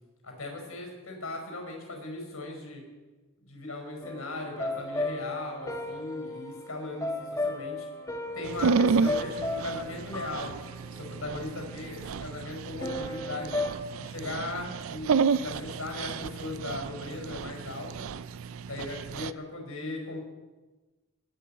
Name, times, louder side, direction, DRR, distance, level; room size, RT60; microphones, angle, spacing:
voice 1, 0.2-2.8 3.4-7.9 8.3-10.5 11.0-13.6 14.0-18.1 18.7-20.2, left 2 dB, 85° left, 2 dB, 5.0 m, -38 dB
sound 1, 4.0-12.0 12.8-13.7, left 2 dB, 15° left, 1.3 m, -35 dB
Dog, 8.5-19.3, right 5 dB, 75° right, 0.4 m, -31 dB
20.0 x 8.4 x 5.7 m, 1.2 s
head